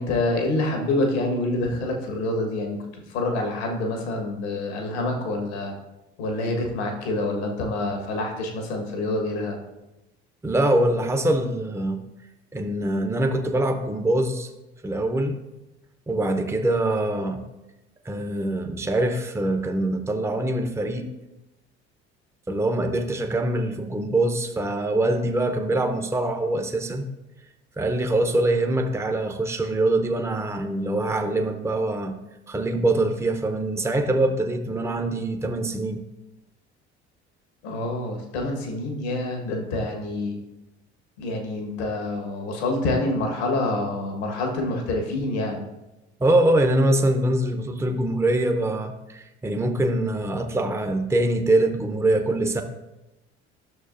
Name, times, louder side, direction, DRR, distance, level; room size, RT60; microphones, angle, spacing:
voice 1, 0.0-5.7 6.2-9.6 37.6-40.4 41.2-45.6, left 2 dB, 75° left, 2 dB, 1.5 m, -27 dB
voice 2, 10.4-12.0 12.5-14.5 14.8-15.4 16.1-17.4 18.0-21.1 22.5-27.1 27.8-32.2 32.5-36.0 46.2-52.6, right 1 dB, 10° right, 6 dB, 0.7 m, -24 dB
11.0 x 6.5 x 2.6 m, 0.97 s
hypercardioid pair, 60°, 33 cm